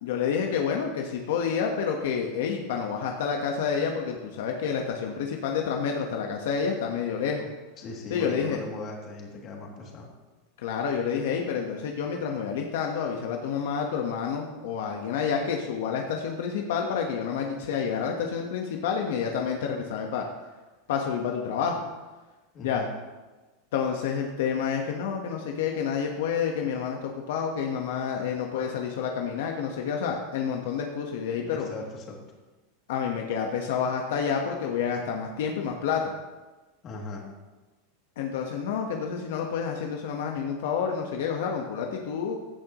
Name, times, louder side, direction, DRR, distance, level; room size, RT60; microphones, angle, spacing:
voice 1, 0.0-7.5 8.1-8.6 10.6-20.2 20.9-21.8 22.6-22.8 23.7-31.7 32.9-36.1 38.2-42.4, left 6 dB, 75° left, 2 dB, 1.3 m, -29 dB
voice 2, 7.8-10.1 22.5-22.9 31.4-32.2 36.8-37.3, left 3 dB, 35° left, -1 dB, 2.7 m, -38 dB
16.0 x 10.5 x 3.1 m, 1.2 s
supercardioid pair, 150°, 0 cm